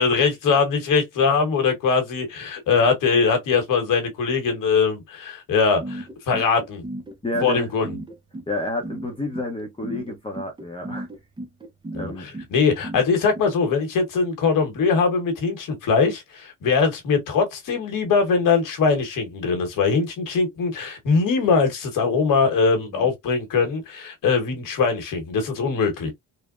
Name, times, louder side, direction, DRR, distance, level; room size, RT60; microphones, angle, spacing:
voice 1, 0.0-6.8 7.4-7.9 11.9-26.1, left 5 dB, 80° left, 1.2 m, -21 dB
sound 1, 5.8-13.5, right 1 dB, 15° right, 0.6 m, -35 dB
voice 2, 7.2-7.7 8.5-11.1 12.0-12.3 22.9-23.1, left 1 dB, 15° left, 0.8 m, -30 dB
3.3 x 2.1 x 2.4 m
cardioid pair, 100°, 32 cm